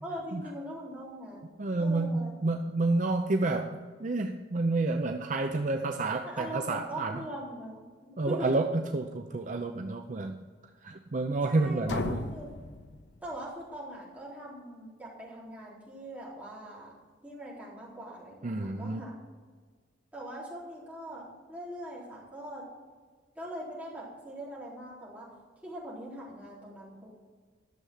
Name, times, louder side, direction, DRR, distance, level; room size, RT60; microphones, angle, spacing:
voice 1, 0.0-1.4 1.8-2.3 6.2-8.5 11.5-12.5 13.2-16.9 17.2-19.2 20.1-22.6 23.4-25.3 25.6-27.1, right 1 dB, 10° right, -8 dB, 4.1 m, -41 dB
voice 2, 1.6-7.2 8.2-10.4 10.8-12.3 18.4-19.1, right 2 dB, 45° right, 5 dB, 0.6 m, -29 dB
sound 1, 11.9-13.7, left 3 dB, 75° left, 0.7 m, -37 dB
12.0 x 7.0 x 6.5 m, 1.5 s
head